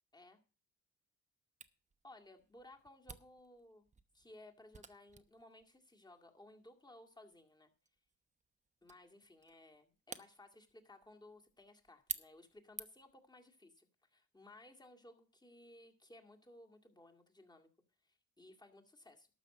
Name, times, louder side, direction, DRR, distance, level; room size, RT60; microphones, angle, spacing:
Camera, 1.6-13.2, right 5 dB, 25° right, 0.9 m, -53 dB
voice 1, 2.0-3.9 4.1-7.7 8.8-17.7 18.0-19.3, left 1 dB, 15° left, 3 dB, 2.1 m, -59 dB
12.5 x 5.4 x 7.6 m, 0.35 s
cardioid pair, 90°, 30 cm